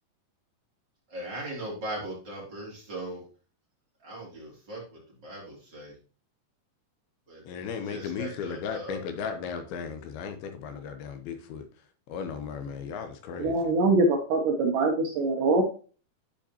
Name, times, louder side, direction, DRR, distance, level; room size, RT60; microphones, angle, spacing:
voice 1, 1.1-3.2 4.0-4.8 5.2-5.9 7.3-9.0, right 1 dB, 30° right, 3.3 m, -39 dB
voice 2, 7.5-11.7 12.1-13.6, left 6 dB, 80° left, 2.6 m, -36 dB
voice 3, 13.4-15.6, right 2 dB, 70° right, 2.1 m, -23 dB
12.0 x 5.0 x 2.9 m
omnidirectional pair, 4.6 m